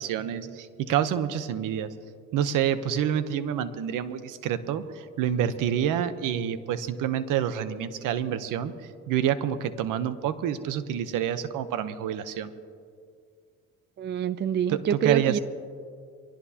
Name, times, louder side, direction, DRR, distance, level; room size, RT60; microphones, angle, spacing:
voice 1, 0.0-1.9 2.3-8.7 9.1-12.5 14.7-15.4, right 9 dB, 80° right, 12 dB, 0.9 m, -28 dB
voice 2, 14.0-15.4, right 9 dB, 35° right, 17 dB, 0.4 m, -26 dB
23.5 x 17.5 x 2.9 m, 2.3 s
cardioid pair, 80°, 31 cm